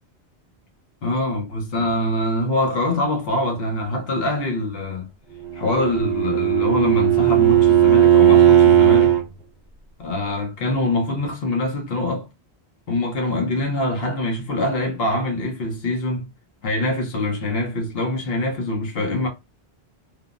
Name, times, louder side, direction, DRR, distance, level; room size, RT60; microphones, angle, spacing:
voice 1, 1.0-5.1 5.5-9.2 10.0-12.3 12.9-16.2 16.6-19.3, left 1 dB, 65° left, 1.1 m, -24 dB
Bowed string instrument, 5.5-9.2, right 11 dB, 50° right, 0.7 m, -15 dB
3.3 x 2.0 x 2.5 m
omnidirectional pair, 1.1 m